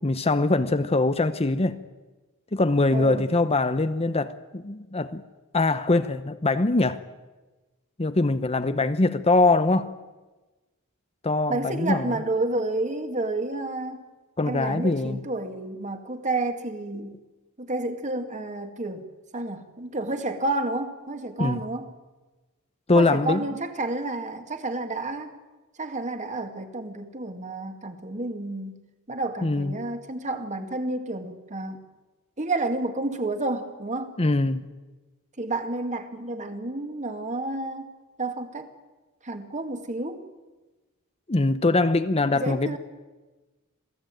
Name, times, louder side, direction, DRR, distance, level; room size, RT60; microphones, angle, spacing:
voice 1, 0.0-1.8 2.5-5.2 5.5-7.0 8.0-9.9 11.2-12.0 14.4-15.2 21.4-21.6 22.9-23.4 29.4-29.7 34.2-34.6 41.3-42.8, left 2 dB, 30° left, 0.8 m, -23 dB
voice 2, 2.9-3.3 11.5-14.1 14.5-17.1 17.6-19.1 19.3-21.9 22.9-25.3 25.8-28.8 29.1-31.8 32.4-34.1 35.4-37.9 38.2-38.7 39.2-40.2 42.3-42.8, right 2 dB, 35° right, 2.2 m, -30 dB
27.0 x 17.0 x 9.1 m
head